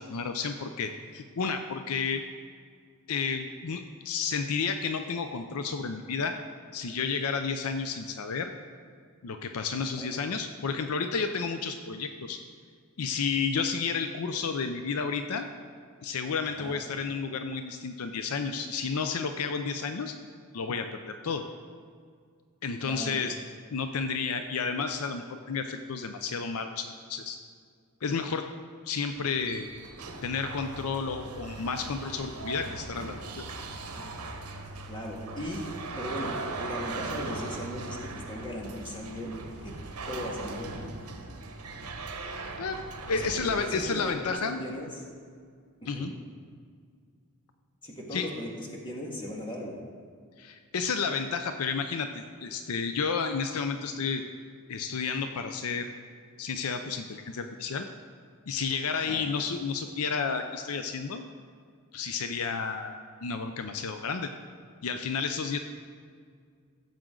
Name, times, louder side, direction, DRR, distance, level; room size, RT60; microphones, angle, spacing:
voice 1, 0.0-2.2 3.1-6.4 6.7-8.5 9.2-12.4 13.0-15.5 16.0-20.1 20.5-21.4 22.6-23.4 23.7-27.4 28.0-28.5 28.8-29.7 30.2-33.4 42.6-44.6 45.9-46.1 48.1-48.3 50.4-54.2 54.7-55.9 56.4-57.9 58.5-61.2 61.9-62.9 63.2-64.3 64.8-65.6, left 5 dB, 70° left, 7 dB, 0.5 m, -31 dB
voice 2, 16.5-16.8 22.8-23.2 34.9-35.7 36.0-36.3 36.6-39.3 39.6-39.7 40.1-40.8 43.1-45.0 45.9-46.1 47.8-49.8 59.1-59.3, left 1 dB, 20° left, -1 dB, 1.7 m, -38 dB
sound 1, 29.1-44.3, right 3 dB, 80° right, 1.1 m, -39 dB
15.5 x 7.5 x 3.8 m, 2.1 s
head